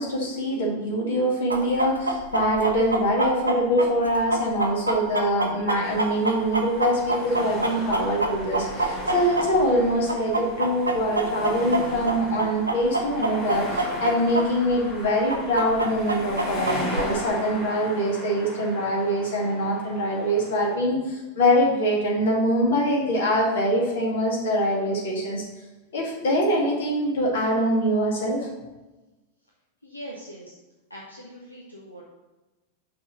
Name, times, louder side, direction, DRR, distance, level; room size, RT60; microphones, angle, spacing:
voice 1, 0.0-25.4 25.9-28.5, equal, 60° left, -2 dB, 2.0 m, -24 dB
Chicken rooster, 1.5-9.8 10.1-14.4 14.7-14.8 15.3-17.0, right 2 dB, 80° right, 0.7 m, -25 dB
sound 1, 5.8-20.8, left 1 dB, 35° left, 2.5 m, -37 dB
voice 2, 29.8-30.6 30.9-32.0, equal, 85° left, -3 dB, 0.9 m, -41 dB
5.9 x 3.9 x 6.1 m, 1.1 s
figure-of-eight pair, 90°, 0 cm